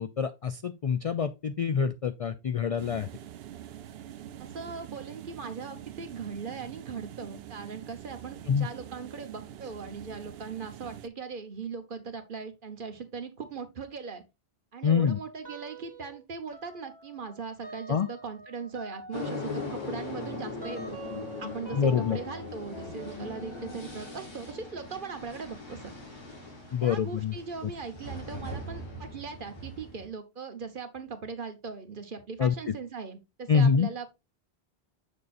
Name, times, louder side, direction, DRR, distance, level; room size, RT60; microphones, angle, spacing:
voice 1, 0.0-3.1 8.5-8.7 14.8-15.2 17.9-18.1 21.7-22.2 26.7-27.3 32.4-32.7 33.5-33.9, left 6 dB, 55° left, 0.4 m, -26 dB
sound 1, 2.8-11.1, right 11 dB, 75° right, 0.8 m, -45 dB
voice 2, 4.4-14.2 14.7-21.0 21.4-25.9 26.8-34.1, right 5 dB, 55° right, 1.2 m, -39 dB
sound 2, 15.4-16.2 16.5-26.9, right 2 dB, 25° right, 1.6 m, -47 dB
sound 3, 19.1-30.1, left 2 dB, 25° left, 2.6 m, -40 dB
7.1 x 6.6 x 2.5 m
omnidirectional pair, 1.1 m